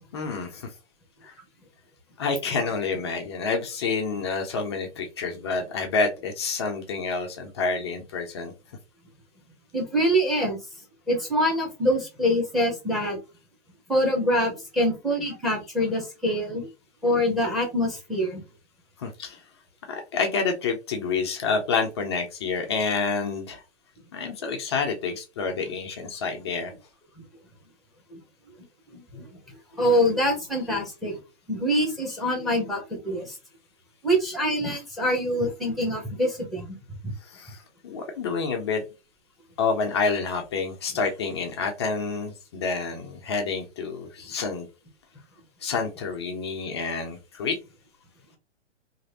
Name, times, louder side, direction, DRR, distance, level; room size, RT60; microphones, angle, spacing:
voice 1, 0.1-0.7 1.2-1.3 2.2-8.5 19.0-19.4 19.9-23.6 24.1-26.7 37.2-38.8 39.6-44.7 45.6-47.6, left 4 dB, 25° left, 3 dB, 0.4 m, -28 dB
voice 2, 9.7-10.6 11.1-13.2 13.9-16.7 17.0-18.4 28.1-28.2 28.9-29.3 29.8-31.2 31.5-33.4 34.0-36.7 37.0-37.1, equal, ahead, 2 dB, 0.8 m, -25 dB
3.0 x 2.5 x 2.7 m, 0.28 s
hypercardioid pair, 135°, 37 cm